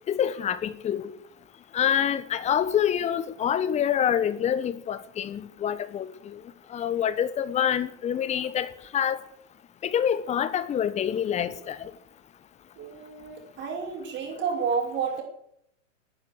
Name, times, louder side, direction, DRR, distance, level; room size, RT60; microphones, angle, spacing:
voice 1, 0.1-1.1 1.7-6.4 6.7-9.2 9.8-11.9, left 9 dB, 15° left, 14 dB, 1.1 m, -26 dB
voice 2, 12.8-15.2, right 6 dB, 30° right, 1 dB, 5.2 m, -30 dB
18.0 x 9.8 x 8.0 m, 0.73 s
hypercardioid pair, 130°, 39 cm